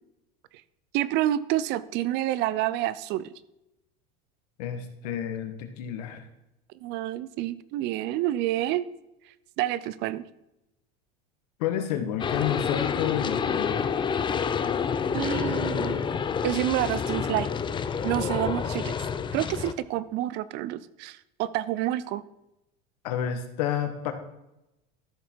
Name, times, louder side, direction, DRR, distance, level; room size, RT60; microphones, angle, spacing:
voice 1, 0.9-3.3 6.8-8.9 9.6-10.2 15.1-16.0 16.4-17.5 18.0-18.9 19.3-22.2, right 14 dB, 60° right, 17 dB, 0.7 m, -28 dB
voice 2, 4.6-6.2 11.6-14.0 23.0-24.1, left 9 dB, 85° left, 7 dB, 1.6 m, -30 dB
sound 1, 12.2-19.7, left 6 dB, 25° left, 0.7 m, -28 dB
13.0 x 7.2 x 4.6 m, 0.89 s
supercardioid pair, 120°, 20 cm